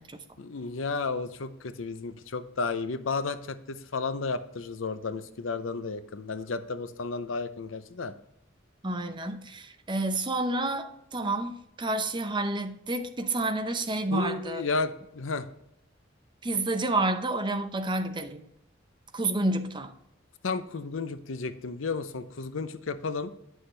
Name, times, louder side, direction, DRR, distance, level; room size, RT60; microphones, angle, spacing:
voice 1, 0.4-8.1 14.1-15.5 20.4-23.3, left 4 dB, 85° left, 11 dB, 0.7 m, -33 dB
voice 2, 8.8-14.6 16.4-18.4 19.1-19.9, right 2 dB, 25° right, 8 dB, 0.7 m, -29 dB
9.6 x 6.3 x 3.3 m, 0.81 s
head